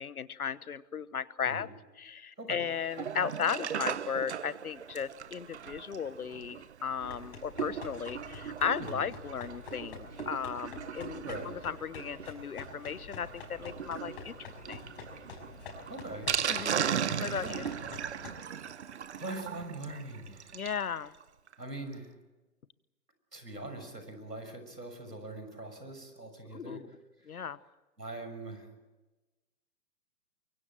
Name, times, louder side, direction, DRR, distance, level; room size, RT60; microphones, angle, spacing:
voice 1, 0.0-1.7 2.0-14.3 14.7-14.8 16.5-16.8 17.1-17.6 20.5-21.1 26.5-26.8 27.3-27.6, left 7 dB, 65° left, 18 dB, 1.2 m, -36 dB
Sink (filling or washing), 2.8-20.9 21.2-21.3 21.5-21.6 21.9-22.0, right 8 dB, 45° right, 0.9 m, -38 dB
sound 1, 7.0-18.4, left 4 dB, 35° left, 5.7 m, -47 dB
voice 2, 11.2-11.7 15.9-16.9 17.4-18.0 19.2-20.6 21.6-22.1 23.3-26.8 27.2-27.4 28.0-28.7, right 2 dB, 85° right, 7 dB, 6.6 m, -42 dB
24.0 x 23.5 x 7.7 m, 1.1 s
figure-of-eight pair, 135°, 48 cm